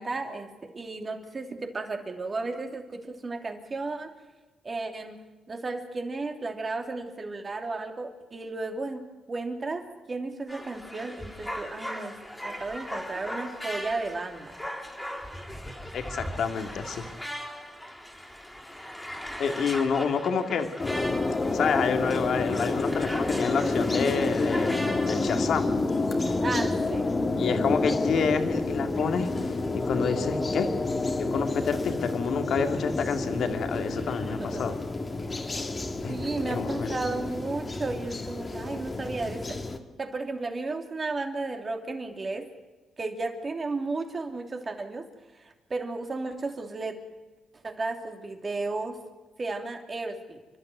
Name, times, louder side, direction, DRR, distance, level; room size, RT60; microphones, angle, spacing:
voice 1, 0.0-4.1 4.6-5.2 5.5-12.2 12.4-14.6 26.4-27.1 34.4-34.6 36.1-39.6 40.0-42.5 43.0-45.1 45.3-47.0 47.6-49.0 49.4-50.4, right 3 dB, 30° right, 4 dB, 2.9 m, -34 dB
sound 1, 10.5-25.5, equal, 10° left, 3.4 m, -39 dB
voice 2, 15.9-17.0 19.4-20.7 21.5-24.7 25.1-25.8 27.4-30.7 31.2-34.8 36.0-36.2 36.5-37.0, left 6 dB, 65° left, 6 dB, 2.2 m, -28 dB
sound 2, 20.8-39.8, left 3 dB, 25° left, 2.1 m, -29 dB
28.5 x 12.0 x 9.3 m, 1.2 s
cardioid pair, 90°, 0 cm